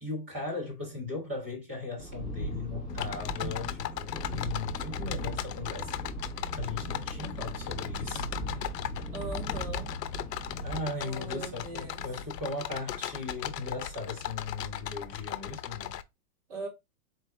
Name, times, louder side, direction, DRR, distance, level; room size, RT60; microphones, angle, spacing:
voice 1, 0.0-6.0 6.6-8.3 8.5-8.7 9.0-9.1 10.6-15.9, left 3 dB, 10° right, 0.5 m, -38 dB
sound 1, 2.0-10.9, equal, 10° left, 1.0 m, -38 dB
sound 2, 2.9-16.0, left 11 dB, 85° left, 0.7 m, -38 dB
sound 3, 6.4-12.4, left 1 dB, 50° left, 1.4 m, -48 dB
voice 2, 9.1-9.9 11.0-12.0 16.5-16.7, right 4 dB, 35° right, 3.4 m, -40 dB
4.5 x 3.4 x 3.5 m
hypercardioid pair, 175°, 47 cm